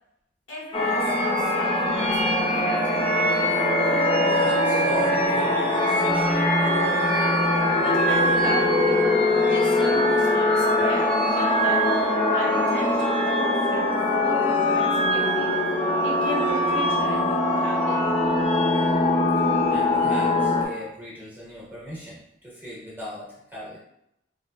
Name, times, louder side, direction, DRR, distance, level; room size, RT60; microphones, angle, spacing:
voice 1, 0.5-2.8 7.8-8.9 9.4-12.0 12.3-13.9 14.2-15.6 16.0-18.1, left 2 dB, 85° left, -3 dB, 1.0 m, -35 dB
sound 1, 0.7-20.6, left 1 dB, 30° left, 0.5 m, -22 dB
voice 2, 4.2-6.7 19.4-23.8, left 1 dB, 10° right, -6 dB, 0.8 m, -38 dB
3.3 x 2.9 x 2.2 m, 0.82 s
head